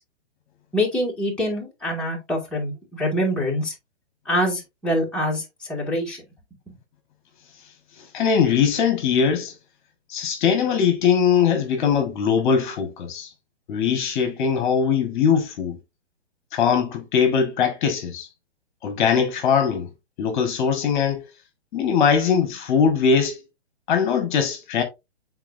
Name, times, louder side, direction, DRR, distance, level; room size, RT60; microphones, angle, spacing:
voice 1, 0.7-3.7 4.3-6.2, equal, 5° left, 2.0 m, -25 dB
voice 2, 8.1-9.5 10.1-13.3 13.7-15.8 16.5-18.3 18.8-19.9 20.2-21.2 21.7-23.4 23.9-24.8, left 6 dB, 45° left, 1.5 m, -21 dB
9.0 x 4.0 x 2.6 m
hypercardioid pair, 140°, 35 cm